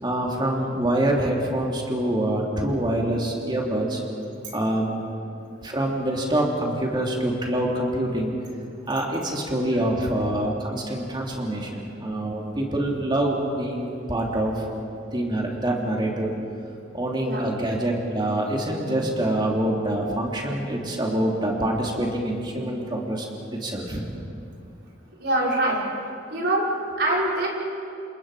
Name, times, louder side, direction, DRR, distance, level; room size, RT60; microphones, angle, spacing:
voice 1, 0.0-4.0 4.5-4.9 5.6-8.3 8.9-14.6 15.1-16.3 16.9-23.3 23.5-24.0, right 1 dB, 25° right, -1 dB, 3.0 m, -25 dB
voice 2, 25.2-25.8 26.3-26.7 27.0-27.5, right 1 dB, 60° right, -4 dB, 5.9 m, -25 dB
29.0 x 27.0 x 5.0 m, 2.6 s
head